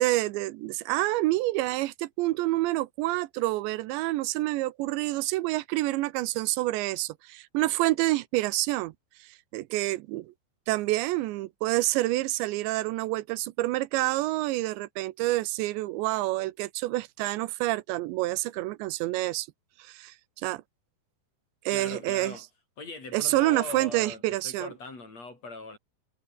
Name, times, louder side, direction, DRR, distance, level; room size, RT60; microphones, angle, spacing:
voice 1, 0.0-8.9 9.2-10.3 10.7-19.5 19.8-20.6 21.7-22.3 23.1-24.7, right 18 dB, 90° right, 3.1 m, -28 dB
voice 2, 21.7-22.4 22.8-25.8, left 3 dB, 35° left, 7.4 m, -40 dB
omnidirectional pair, 5.1 m